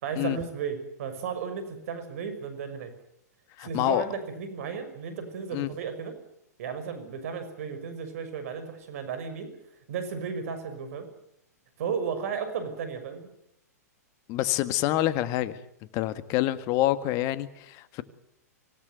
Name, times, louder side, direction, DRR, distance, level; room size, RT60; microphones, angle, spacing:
voice 1, 0.0-2.9 3.6-6.2 6.6-9.5 9.9-11.1 11.8-13.3, right 6 dB, 60° right, 10 dB, 6.1 m, -34 dB
voice 2, 3.6-4.1 5.5-5.7 14.3-15.6 15.9-18.0, left 15 dB, 40° left, 13 dB, 1.8 m, -27 dB
26.0 x 17.5 x 9.3 m, 0.78 s
hypercardioid pair, 115°, 9 cm